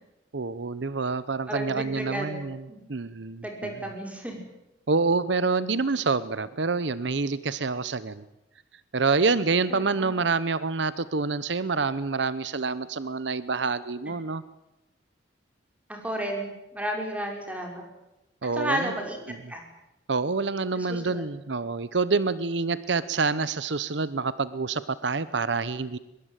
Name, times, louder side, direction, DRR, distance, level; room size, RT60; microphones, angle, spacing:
voice 1, 0.3-2.6 2.9-3.7 4.9-8.2 8.9-14.4 18.4-18.9 19.3-19.4 20.1-26.0, right 4 dB, 75° right, 16 dB, 0.8 m, -27 dB
voice 2, 1.5-2.8 3.4-4.4 9.7-10.1 15.9-17.8 18.6-19.6 20.8-21.2, right 1 dB, 10° right, 2 dB, 5.5 m, -33 dB
23.0 x 21.5 x 9.1 m, 0.92 s
head